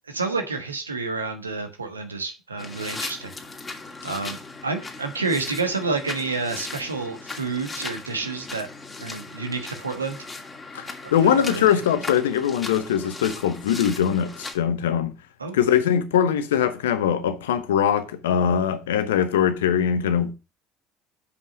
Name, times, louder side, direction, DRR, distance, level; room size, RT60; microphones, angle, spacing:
voice 1, 0.1-3.3 4.0-4.4 4.6-8.7 9.0-10.2 11.0-11.7 15.4-15.6, right 4 dB, 90° right, 1.3 m, -29 dB
sound 1, 2.6-14.5, left 3 dB, 20° left, 2.4 m, -38 dB
voice 2, 10.7-15.1 15.5-20.3, left 9 dB, 75° left, 0.9 m, -22 dB
6.8 x 5.4 x 6.3 m
figure-of-eight pair, 60°, 0 cm